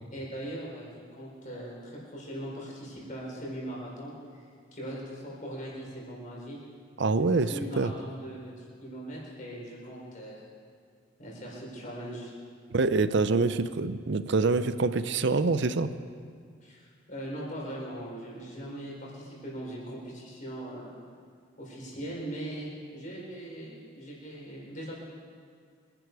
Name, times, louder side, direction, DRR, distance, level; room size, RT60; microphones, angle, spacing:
voice 1, 0.1-4.4 4.7-6.7 7.3-10.4 11.2-12.3 16.6-20.9 21.6-25.0, right 1 dB, 40° left, -4 dB, 4.6 m, -40 dB
voice 2, 7.0-7.9 12.7-15.9, right 3 dB, 55° right, 12 dB, 0.6 m, -25 dB
25.0 x 11.0 x 4.8 m, 2.2 s
head